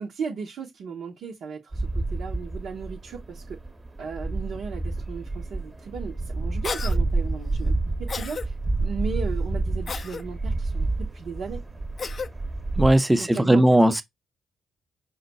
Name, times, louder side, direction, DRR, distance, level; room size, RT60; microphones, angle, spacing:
voice 1, 0.0-3.6 4.0-11.6 13.2-13.6, right 5 dB, 70° right, 0.8 m, -36 dB
sound 1, 1.7-13.0, right 2 dB, 30° right, 1.0 m, -29 dB
Cough, 6.6-7.0 8.1-8.5 9.9-10.2 12.0-12.3, left 5 dB, 50° left, 0.4 m, -32 dB
voice 2, 12.8-14.0, right 1 dB, 10° right, 0.7 m, -18 dB
5.0 x 2.3 x 4.1 m
hypercardioid pair, 45°, 0 cm